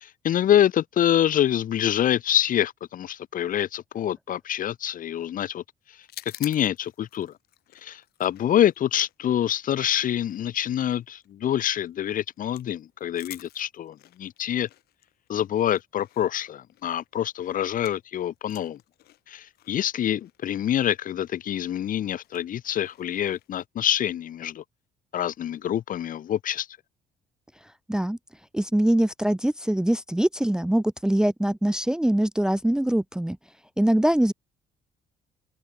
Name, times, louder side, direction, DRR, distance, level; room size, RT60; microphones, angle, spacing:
voice 1, 0.0-5.6 6.4-7.3 7.8-14.7 15.3-18.8 19.3-24.6 25.1-26.7, left 10 dB, 60° left, 1.3 m, -26 dB
sound 1, 6.0-18.1 18.4-23.7, left 14 dB, 85° left, 5.6 m, -50 dB
voice 2, 28.5-33.4 33.8-34.3, right 1 dB, 5° right, 0.5 m, -23 dB
open air
cardioid pair, 110°, 16 cm